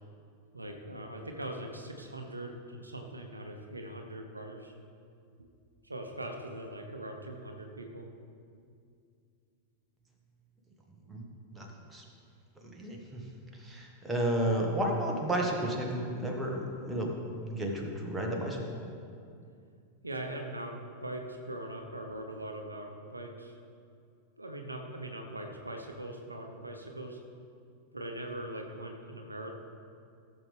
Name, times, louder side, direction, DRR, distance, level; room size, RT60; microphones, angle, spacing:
voice 1, 0.5-4.7 5.4-5.5 5.8-8.1 8.5-8.6 11.1-11.2 20.0-23.6 24.4-27.2 27.9-29.6, right 1 dB, 80° right, 3 dB, 0.8 m, -41 dB
voice 2, 11.5-12.0 12.6-13.2 13.5-18.7, right 1 dB, 10° right, -1 dB, 1.6 m, -32 dB
15.5 x 7.1 x 3.5 m, 2.4 s
figure-of-eight pair, 90°, 0 cm